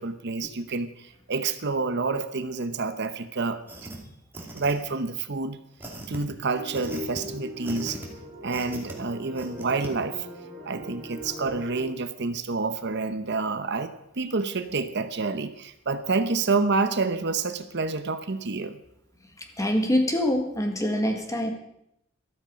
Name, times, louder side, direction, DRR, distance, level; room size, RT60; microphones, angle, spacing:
voice 1, 0.0-3.9 4.5-5.6 6.1-8.0 8.4-10.3 10.7-13.9 14.2-18.8, right 4 dB, 60° right, 10 dB, 0.9 m, -28 dB
sound 1, 3.7-4.0 4.3-5.0 5.8-6.2 6.7-7.2 7.6-8.1 8.5-8.9 9.4-9.9, right 1 dB, 10° right, 2.4 m, -39 dB
sound 2, 6.5-11.8, left 2 dB, 40° right, 3.8 m, -40 dB
voice 2, 19.6-21.5, left 1 dB, 15° left, 4 dB, 1.9 m, -24 dB
13.5 x 13.0 x 5.2 m, 0.78 s
head